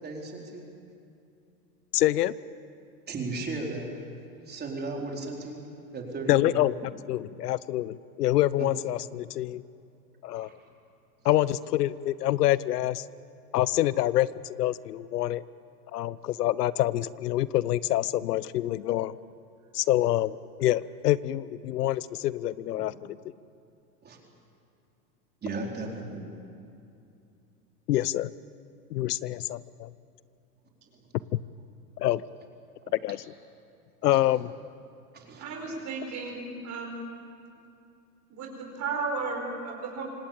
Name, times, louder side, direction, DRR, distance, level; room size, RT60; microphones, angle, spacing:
voice 1, 0.0-0.7 3.1-3.9 4.5-5.6 5.9-6.6 8.6-8.7 10.3-10.6 24.0-24.2 25.4-26.3 34.1-34.2 35.1-35.5, right 3 dB, 20° right, 0 dB, 4.2 m, -35 dB
voice 2, 1.9-2.3 6.3-6.8 7.1-9.6 10.2-10.5 11.2-13.0 13.5-15.4 15.9-19.2 19.7-23.2 27.9-28.3 28.9-29.9 32.0-32.2 33.0-33.2 34.0-34.5, left 14 dB, 80° left, 19 dB, 0.9 m, -26 dB
voice 3, 35.4-36.9 38.3-40.0, right 4 dB, 35° right, 1 dB, 4.8 m, -34 dB
26.5 x 18.5 x 8.8 m, 2.6 s
hypercardioid pair, 120°, 47 cm